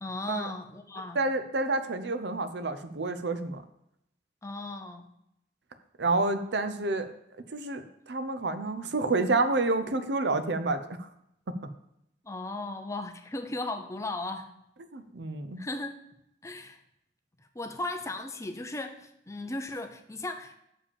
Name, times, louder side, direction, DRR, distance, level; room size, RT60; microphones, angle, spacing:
voice 1, 0.0-1.2 4.4-5.1 12.2-14.5 15.6-15.9 16.4-16.8 17.5-20.6, left 2 dB, 15° left, 6 dB, 0.6 m, -36 dB
voice 2, 1.2-3.6 6.0-7.1 7.5-11.1 14.9-15.6, right 3 dB, 65° right, 9 dB, 0.6 m, -29 dB
6.8 x 5.0 x 7.0 m, 0.78 s
head